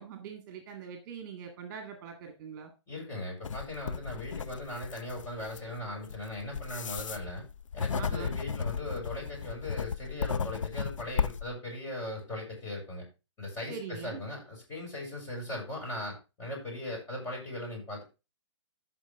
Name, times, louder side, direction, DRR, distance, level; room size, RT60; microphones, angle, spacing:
voice 1, 0.0-2.7 8.0-8.4 13.7-14.3, right 7 dB, 40° right, 4 dB, 1.9 m, -43 dB
voice 2, 2.9-7.5 7.7-13.0 13.4-18.0, left 1 dB, 20° left, -2 dB, 6.5 m, -39 dB
sound 1, 3.4-11.5, left 6 dB, 90° left, 0.6 m, -35 dB
14.0 x 5.8 x 3.6 m, 0.29 s
hypercardioid pair, 150°, 16 cm